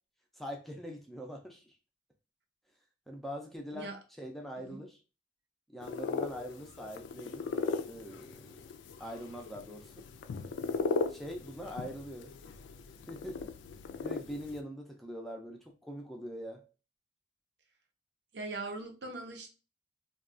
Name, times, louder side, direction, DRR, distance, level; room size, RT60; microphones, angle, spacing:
voice 1, 0.4-1.7 3.1-3.9 4.2-5.0 5.7-7.5 7.8-8.6 9.0-10.0 11.1-12.3 13.1-13.4 14.0-16.6, equal, ahead, 1 dB, 0.4 m, -43 dB
sound 1, 5.8-14.6, left 4 dB, 80° left, 0.3 m, -38 dB
voice 2, 18.3-19.5, right 3 dB, 70° right, 3 dB, 0.6 m, -40 dB
2.3 x 2.3 x 3.6 m, 0.33 s
head